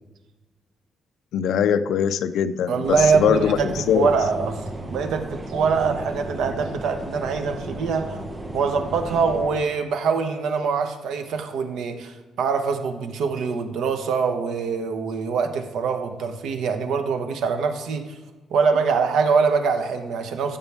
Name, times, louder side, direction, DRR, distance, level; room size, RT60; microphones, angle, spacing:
voice 1, 1.3-4.1, left 8 dB, 80° left, 9 dB, 0.4 m, -22 dB
voice 2, 2.7-4.6 4.9-8.2 8.5-18.0 18.5-20.6, right 5 dB, 90° right, 7 dB, 1.2 m, -23 dB
sound 1, 2.8-9.6, right 2 dB, 20° right, 1.0 m, -34 dB
14.5 x 7.1 x 3.6 m, 1.2 s
cardioid pair, 145°, 0 cm